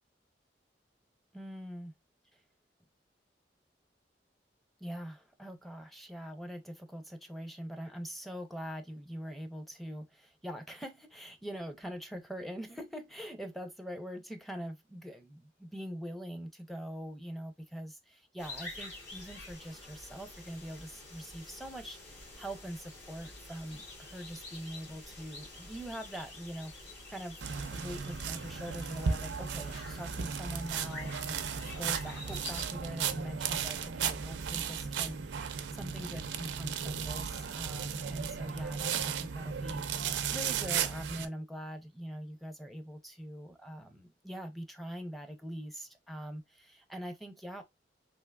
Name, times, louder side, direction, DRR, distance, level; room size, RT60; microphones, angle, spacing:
voice 1, 1.3-1.9 2.3-2.4 4.8-27.4 27.7-47.6, equal, ahead, 0.5 m, -43 dB
sound 1, 18.4-32.7, left 2 dB, 70° left, 2.0 m, -48 dB
sound 2, 27.4-41.3, right 7 dB, 85° right, 0.4 m, -35 dB
3.4 x 2.8 x 2.3 m
head